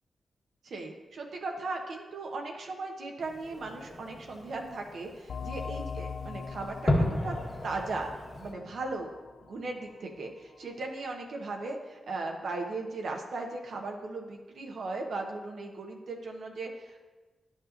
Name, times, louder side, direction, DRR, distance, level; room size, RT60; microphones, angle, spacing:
voice 1, 0.6-7.3 7.6-8.1 8.4-9.1 9.4-17.0, right 3 dB, 75° right, 2 dB, 0.9 m, -37 dB
Fireworks, 3.2-8.5, left 1 dB, 55° left, 1.9 m, -34 dB
sound 1, 5.3-10.6, left 6 dB, 75° left, 0.3 m, -42 dB
11.0 x 5.3 x 2.6 m, 1.2 s
supercardioid pair, 40°, 0 cm